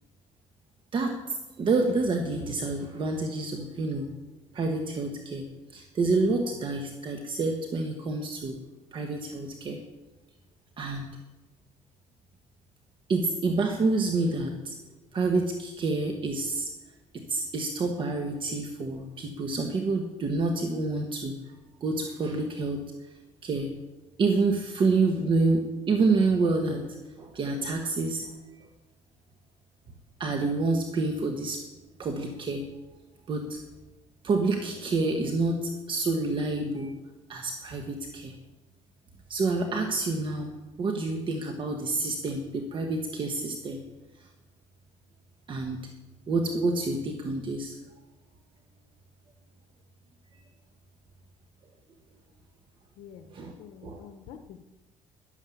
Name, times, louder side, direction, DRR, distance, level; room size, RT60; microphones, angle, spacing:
voice 1, 0.9-4.1 4.5-5.4 5.7-8.6 8.9-9.8 10.8-11.0 13.1-14.7 15.1-16.7 17.1-21.3 21.8-22.8 23.4-23.7 24.2-26.9 27.2-28.3 30.2-31.6 32.0-32.6 33.3-33.6 34.2-36.9 37.3-38.3 39.3-40.5 40.8-43.8 45.5-45.8 46.3-47.7 53.3-53.5 53.8-54.1, right 3 dB, 40° right, 4 dB, 1.4 m, -28 dB
voice 2, 53.0-54.6, left 8 dB, 90° left, 6 dB, 1.0 m, -48 dB
11.5 x 11.0 x 7.2 m, 1.1 s
cardioid pair, 140°, 13 cm